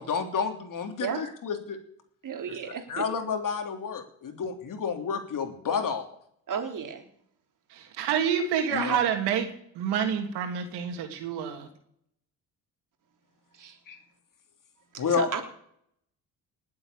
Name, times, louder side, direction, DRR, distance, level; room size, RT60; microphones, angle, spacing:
voice 1, 0.0-1.8 2.5-2.6 2.9-6.1 8.7-9.0 13.9-14.0 15.0-15.3, left 6 dB, 55° left, 6 dB, 3.2 m, -30 dB
voice 2, 2.2-3.0 6.5-7.0 13.6-13.8 14.9-15.4, right 7 dB, 55° right, 4 dB, 3.6 m, -33 dB
voice 3, 7.7-9.5 9.7-11.7, right 8 dB, 85° right, 5 dB, 3.2 m, -28 dB
19.5 x 8.3 x 8.4 m, 0.68 s
supercardioid pair, 80°, 39 cm